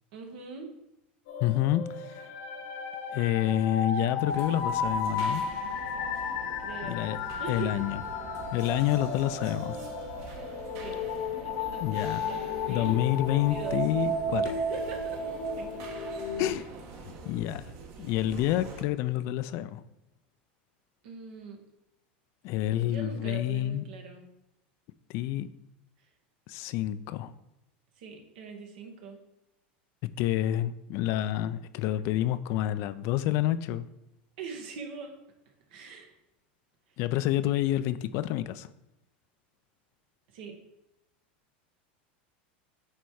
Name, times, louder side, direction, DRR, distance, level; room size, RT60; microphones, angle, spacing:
voice 1, 0.1-0.7 6.6-7.1 7.4-7.7 10.8-11.1 11.4-13.0 13.3-13.8 14.4-15.2 15.6-15.7 21.0-21.6 22.8-24.2 28.0-29.2 34.4-35.2 35.7-36.1 40.3-40.6, right 5 dB, 70° right, 3 dB, 1.5 m, -41 dB
sound 1, 1.3-16.5, left 3 dB, 70° left, 1.2 m, -33 dB
voice 2, 1.4-2.3 3.1-5.4 6.8-7.2 7.5-8.0 8.5-9.8 11.8-12.2 12.7-14.4 16.4-16.7 17.0-17.7 18.0-19.8 22.4-23.8 25.1-25.5 26.5-27.3 30.2-33.9 37.0-38.7, left 13 dB, 55° left, 13 dB, 0.4 m, -28 dB
sound 2, 4.3-18.8, right 4 dB, 50° right, 1.4 m, -45 dB
8.7 x 3.4 x 4.7 m, 0.91 s
supercardioid pair, 110°, 6 cm